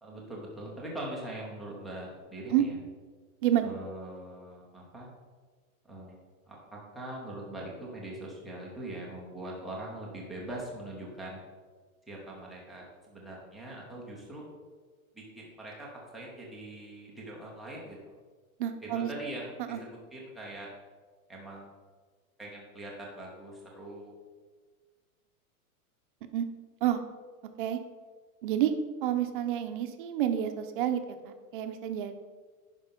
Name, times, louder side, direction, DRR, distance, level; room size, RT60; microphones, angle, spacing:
voice 1, 0.0-2.8 3.6-5.1 5.9-6.2 6.5-11.4 12.1-14.4 15.1-15.9 16.1-18.1 18.8-20.7 21.3-21.7 22.4-24.1, right 1 dB, ahead, -5 dB, 0.5 m, -42 dB
voice 2, 3.4-3.7 18.6-19.1 19.7-19.8 26.3-26.4 26.8-27.0 27.6-27.8 28.4-28.7 29.0-32.1, right 11 dB, 35° right, 7 dB, 0.7 m, -29 dB
10.0 x 5.3 x 5.2 m, 1.4 s
supercardioid pair, 165°, 44 cm